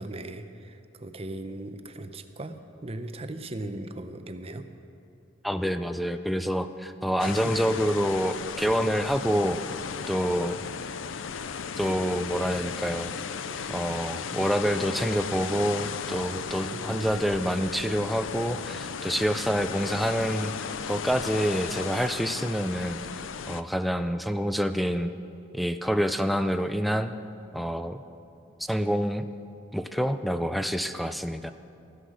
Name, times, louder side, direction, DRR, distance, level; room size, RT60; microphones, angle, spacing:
voice 1, 0.0-4.7 7.4-7.5 16.6-17.2, right 1 dB, 30° right, 8 dB, 0.7 m, -38 dB
voice 2, 5.4-9.6 10.1-10.6 11.8-13.1 13.7-20.5 20.9-23.0 23.5-25.1 25.5-27.1 27.5-28.0 28.7-29.3 29.7-31.5, equal, ahead, 9 dB, 0.4 m, -27 dB
sound 1, 7.2-23.6, left 6 dB, 85° left, 0.5 m, -35 dB
14.5 x 11.5 x 6.3 m, 2.6 s
head